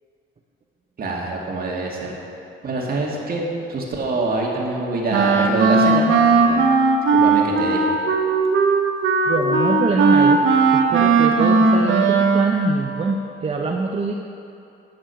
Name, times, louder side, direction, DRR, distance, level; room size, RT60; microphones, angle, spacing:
voice 1, 1.0-2.1 2.6-3.4 3.7-6.6 7.1-7.8, right 2 dB, 50° right, -2 dB, 2.1 m, -25 dB
Wind instrument woodwind instrument, 5.1-12.6, right 4 dB, 80° right, 1.0 m, -17 dB
voice 2, 9.3-10.4 10.7-14.1, right 3 dB, 30° right, 1 dB, 0.7 m, -23 dB
9.9 x 7.5 x 5.8 m, 2.6 s
cardioid pair, 90°, 20 cm